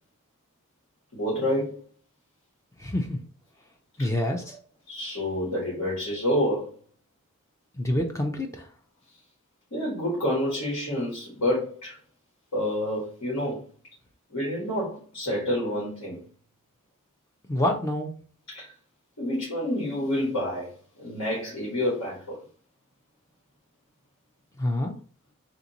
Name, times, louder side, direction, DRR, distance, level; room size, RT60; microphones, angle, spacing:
voice 1, 1.1-1.8 4.0-4.1 4.9-6.7 9.7-12.0 12.5-13.6 14.3-16.2 18.5-18.7 19.2-20.7 21.0-22.4, left 1 dB, 70° left, 1.6 m, -28 dB
voice 2, 2.8-3.2 4.0-4.6 7.8-8.7 17.5-18.1 24.6-24.9, left 1 dB, 15° left, 0.4 m, -27 dB
3.4 x 2.6 x 2.8 m
head